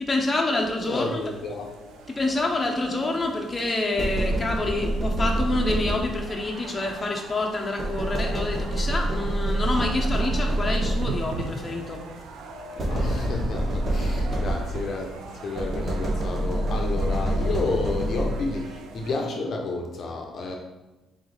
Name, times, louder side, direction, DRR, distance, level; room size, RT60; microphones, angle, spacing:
voice 1, 0.0-1.1 2.1-12.0, left 2 dB, 25° left, 1 dB, 0.7 m, -27 dB
sound 1, 0.8-19.2, right 4 dB, 90° right, 0.4 m, -41 dB
voice 2, 0.9-1.7 12.8-20.6, left 3 dB, 60° left, 2 dB, 0.6 m, -31 dB
sound 2, 4.0-6.4 7.8-11.4 12.8-15.0 15.6-18.6, right 1 dB, 40° right, 1.0 m, -26 dB
3.5 x 3.2 x 3.9 m, 1.0 s
cardioid pair, 90°, 0 cm